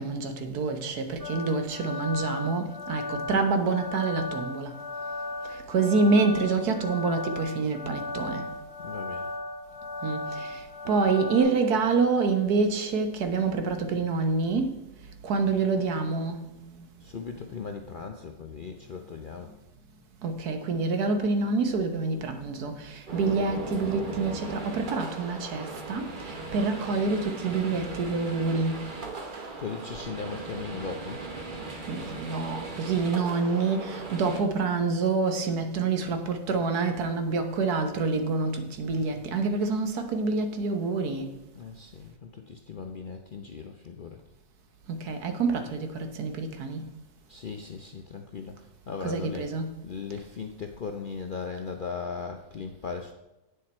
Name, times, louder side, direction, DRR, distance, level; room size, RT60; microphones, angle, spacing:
voice 1, 0.0-4.7 5.4-8.5 10.0-14.7 15.2-16.7 20.2-28.8 29.3-29.5 31.9-41.3 44.9-46.8 49.0-49.7, right 4 dB, 80° right, 1.5 m, -27 dB
sound 1, 1.2-11.4, left 2 dB, 65° right, 2.7 m, -36 dB
voice 2, 8.8-9.3 17.0-19.5 29.6-31.2 38.9-39.2 41.5-44.2 47.3-48.6 48.9-49.5 49.8-53.1, left 5 dB, 55° left, 0.5 m, -38 dB
sound 2, 23.1-34.4, right 3 dB, 35° right, 1.0 m, -38 dB
9.3 x 6.7 x 4.3 m
omnidirectional pair, 1.6 m